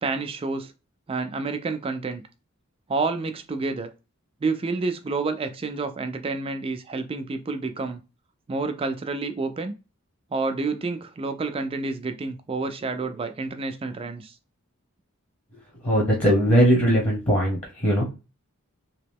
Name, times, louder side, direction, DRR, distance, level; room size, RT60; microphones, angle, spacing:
voice 1, 0.0-0.7 1.1-2.2 2.9-3.9 4.4-8.0 8.5-9.7 10.3-14.4, right 3 dB, 25° right, 0.3 m, -29 dB
voice 2, 15.8-18.1, equal, 30° left, 0.9 m, -20 dB
2.9 x 2.9 x 3.4 m
head